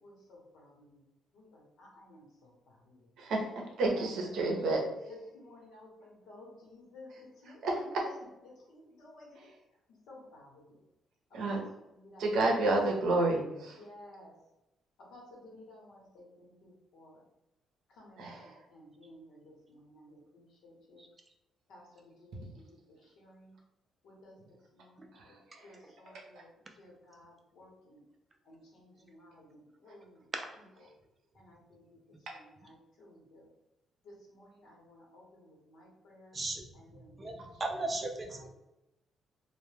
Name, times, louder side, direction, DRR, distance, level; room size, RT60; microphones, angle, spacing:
voice 1, 0.0-0.7 1.3-2.2 4.0-7.1 7.4-8.2 8.7-9.5 10.1-10.5 11.5-11.6 11.9-12.3 13.8-14.3 15.1-17.1 18.0-18.3 18.7-19.4 19.7-21.0 21.7-21.8 22.2-22.6 23.2-23.5 24.0-24.3 24.7-25.4 25.6-26.5 26.8-28.0 28.5-30.2 31.4-31.8 32.3-33.4 34.3-36.3 36.7-37.4 38.3-38.5, left 1 dB, 80° left, -3 dB, 0.9 m, -55 dB
voice 2, 3.8-4.8 7.6-8.1 11.3-11.6 12.2-13.8 18.2-18.4, right 2 dB, 70° right, 0 dB, 0.6 m, -29 dB
voice 3, 37.6-38.5, right 2 dB, 20° right, 3 dB, 0.3 m, -35 dB
2.1 x 2.1 x 3.2 m, 0.91 s
cardioid pair, 170°, 0 cm